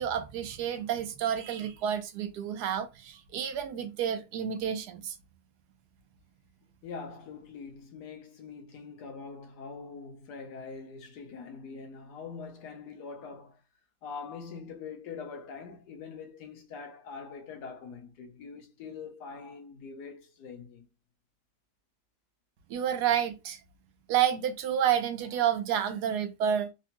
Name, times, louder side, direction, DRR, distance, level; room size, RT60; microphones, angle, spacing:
voice 1, 0.0-5.1 22.7-23.6 24.1-26.7, right 9 dB, 85° right, 1.2 m, -29 dB
voice 2, 6.8-13.6 14.0-20.8, left 5 dB, 85° left, 1.4 m, -43 dB
3.9 x 2.2 x 2.8 m
omnidirectional pair, 1.7 m